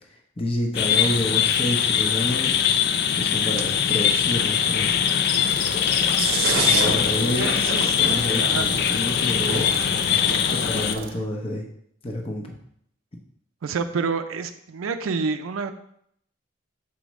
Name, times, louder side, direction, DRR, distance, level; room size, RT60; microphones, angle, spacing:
voice 1, 0.4-2.5 3.1-4.9 6.6-7.5 8.0-9.8 10.5-11.6 12.0-12.5, left 1 dB, 30° left, 2 dB, 0.8 m, -29 dB
sound 1, 0.8-11.0, left 8 dB, 55° left, 0.4 m, -22 dB
sound 2, 5.5-11.1, right 4 dB, 50° right, 0.8 m, -30 dB
voice 2, 6.5-7.9 8.4-8.7 13.6-15.7, right 5 dB, 85° right, 8 dB, 0.4 m, -29 dB
7.1 x 4.9 x 3.1 m, 0.70 s
head